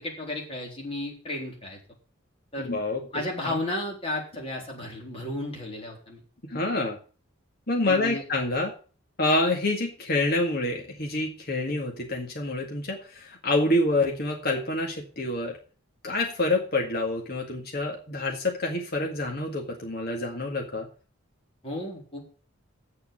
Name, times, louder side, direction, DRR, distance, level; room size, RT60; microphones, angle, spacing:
voice 1, 0.0-1.8 2.5-2.7 3.1-6.2 7.8-8.2 21.6-22.2, left 1 dB, 25° left, -1 dB, 3.9 m, -33 dB
voice 2, 2.6-3.0 3.4-3.6 6.4-7.0 7.7-8.7 9.2-15.6 16.0-20.9, left 2 dB, 50° left, 1 dB, 1.9 m, -27 dB
8.6 x 6.8 x 8.7 m, 0.38 s
head